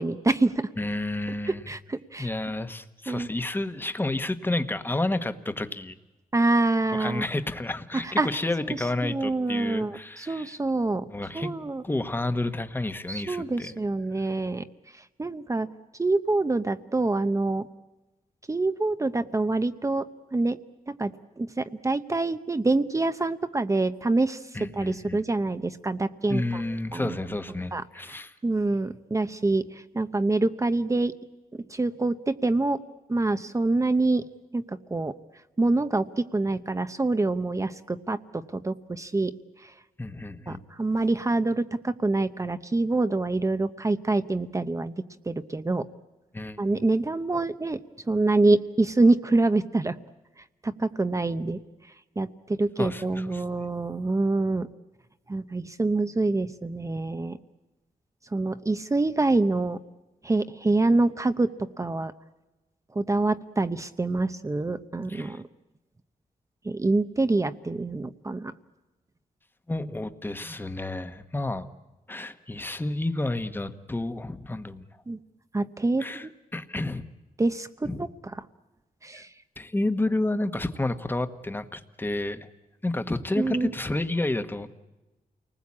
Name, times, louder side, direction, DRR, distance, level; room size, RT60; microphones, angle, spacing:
voice 1, 0.0-0.7 1.5-2.3 3.1-3.3 6.3-7.2 8.0-8.3 8.7-8.8 9.0-11.0 11.3-11.8 13.1-14.6 15.2-15.7 16.0-17.7 18.5-20.1 20.3-20.6 20.9-21.1 21.4-24.4 24.8-27.2 27.7-27.8 28.4-29.6 29.9-31.1 31.7-32.8 33.1-34.2 34.5-34.6 34.9-35.1 35.6-38.2 38.5-39.3 40.5-44.9 45.3-45.9 46.6-47.8 48.1-49.9 50.6-51.6 52.2-54.7 55.3-57.4 58.3-59.8 60.2-61.5 61.8-62.1 62.9-65.4 66.6-68.5 75.1-75.2 75.5-76.3 77.4-78.1 79.0-79.3 83.4-83.7, right 2 dB, 20° right, 10 dB, 0.8 m, -26 dB
voice 2, 0.8-1.7 2.2-6.0 6.9-10.6 11.1-11.5 11.8-13.7 14.2-14.3 24.5-25.2 26.3-28.3 40.0-40.6 46.3-46.6 52.8-53.4 65.1-65.4 69.7-71.7 72.1-74.9 76.0-77.1 77.8-78.1 79.1-79.2 79.6-82.5 82.8-84.7, left 2 dB, 15° left, 10 dB, 1.2 m, -30 dB
29.5 x 20.0 x 8.6 m, 1.1 s
wide cardioid pair, 130°, 15 cm